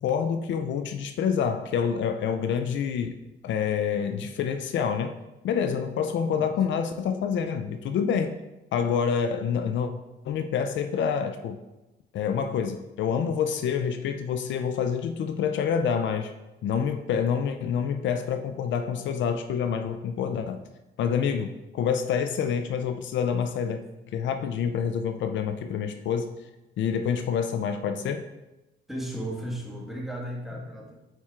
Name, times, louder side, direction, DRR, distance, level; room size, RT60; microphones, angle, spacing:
voice 1, 0.0-3.2 3.4-5.1 5.4-8.4 8.7-9.9 10.2-11.6 12.1-16.3 16.6-20.6 21.0-23.8 24.1-26.3 26.8-28.2, left 7 dB, 70° left, 8 dB, 0.4 m, -27 dB
voice 2, 28.9-30.9, right 1 dB, ahead, -2 dB, 1.5 m, -35 dB
8.9 x 4.3 x 2.4 m, 1.0 s
cardioid pair, 90°, 20 cm